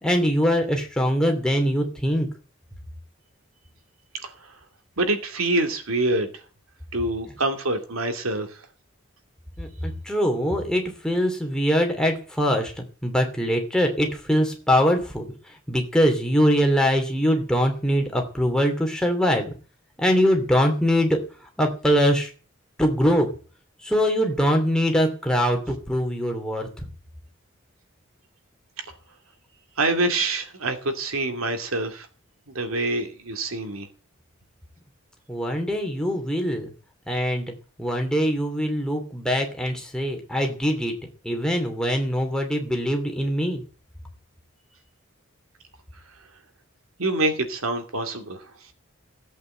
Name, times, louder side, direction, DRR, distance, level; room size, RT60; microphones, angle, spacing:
voice 1, 0.0-2.3 9.6-12.7 13.0-15.2 15.7-19.5 20.0-21.2 21.6-22.3 22.8-23.3 23.8-26.7 35.3-36.7 37.1-37.5 37.8-40.9 41.2-43.6, equal, 5° left, 2 dB, 2.9 m, -22 dB
voice 2, 5.0-6.3 6.9-8.5 29.8-32.1 32.5-33.9 47.0-48.4, right 2 dB, 90° right, 6 dB, 2.6 m, -25 dB
16.0 x 8.5 x 7.9 m, 0.39 s
head